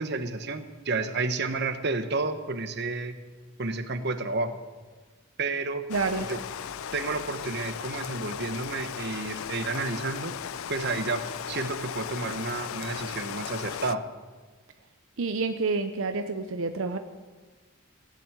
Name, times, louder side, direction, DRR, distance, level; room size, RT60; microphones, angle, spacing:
voice 1, 0.0-3.2 3.6-4.6 5.4-5.9 6.2-6.4 6.9-10.3 10.7-14.0, right 3 dB, 55° right, 9 dB, 1.0 m, -31 dB
Rain, 5.9-13.9, left 8 dB, 85° left, 0.4 m, -37 dB
voice 2, 5.9-6.3 15.2-17.0, right 3 dB, 75° right, 7 dB, 0.7 m, -28 dB
17.5 x 7.6 x 9.0 m, 1.3 s
head